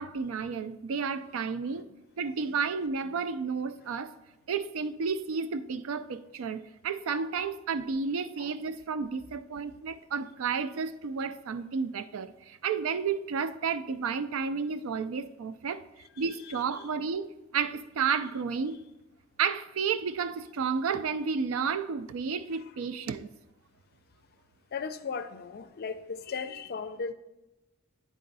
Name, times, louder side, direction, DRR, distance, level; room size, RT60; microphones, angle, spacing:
voice 1, 0.0-1.9 2.2-4.1 4.5-15.8 16.2-17.3 17.5-18.8 19.4-23.3, right 5 dB, 85° right, 0.4 m, -31 dB
voice 2, 7.1-7.5 8.4-8.5 16.2-16.9 22.5-22.6 24.7-27.1, left 5 dB, 50° left, 0.4 m, -38 dB
9.4 x 3.7 x 4.0 m
head